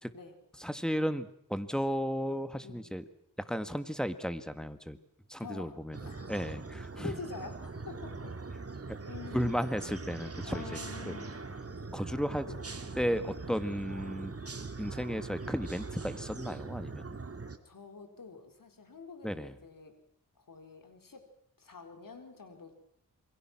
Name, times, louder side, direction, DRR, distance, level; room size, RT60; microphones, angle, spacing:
voice 1, 0.6-3.0 3.5-5.0 5.3-7.1 8.9-9.0 9.3-10.8 11.1-11.2 11.9-12.5 13.0-14.3 14.8-17.2 19.2-19.6, equal, ahead, 11 dB, 1.9 m, -34 dB
voice 2, 5.4-6.3 7.0-8.4 9.0-9.5 10.4-11.4 12.4-12.6 17.6-20.0 20.4-21.2 21.6-22.7, left 4 dB, 70° left, 6 dB, 4.3 m, -46 dB
sound 1, 5.9-17.6, right 3 dB, 40° right, 2.4 m, -42 dB
27.5 x 22.5 x 6.2 m, 0.70 s
wide cardioid pair, 65°, 34 cm